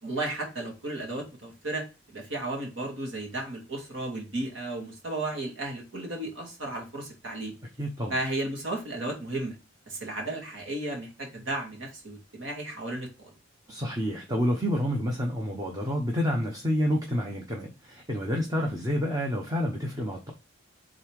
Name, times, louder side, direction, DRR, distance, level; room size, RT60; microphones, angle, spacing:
voice 1, 0.0-7.5 8.1-9.6 9.9-13.3, right 2 dB, 70° right, 2.4 m, -34 dB
voice 2, 7.8-8.1 13.7-20.3, equal, 20° right, 0.9 m, -29 dB
5.4 x 3.8 x 4.7 m
head